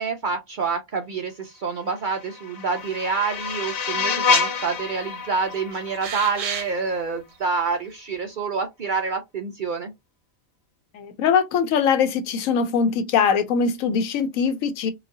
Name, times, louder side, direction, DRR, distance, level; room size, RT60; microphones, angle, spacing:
voice 1, 0.0-9.9, right 5 dB, 60° right, 0.5 m, -27 dB
sound 1, 2.0-7.0, left 5 dB, 55° left, 0.9 m, -27 dB
sound 2, 3.3-3.9 4.2-4.7 5.0-6.9 7.4-7.5, right 7 dB, 75° right, 1.1 m, -35 dB
voice 2, 10.9-14.9, left 6 dB, 90° left, 1.0 m, -22 dB
3.9 x 2.3 x 2.6 m
omnidirectional pair, 1.3 m